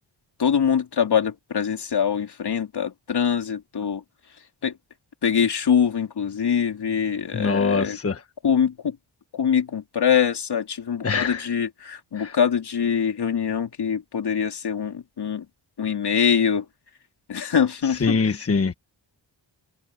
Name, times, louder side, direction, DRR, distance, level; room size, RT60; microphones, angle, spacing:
voice 1, 0.4-4.0 4.6-4.8 5.2-8.0 8.4-9.0 9.3-15.5 15.8-16.7 17.3-18.4, left 7 dB, 60° left, 3.3 m, -23 dB
voice 2, 7.3-8.2 11.0-11.5 12.1-12.3 17.9-18.7, left 4 dB, 30° left, 1.4 m, -23 dB
open air
wide cardioid pair, 100°, 45 cm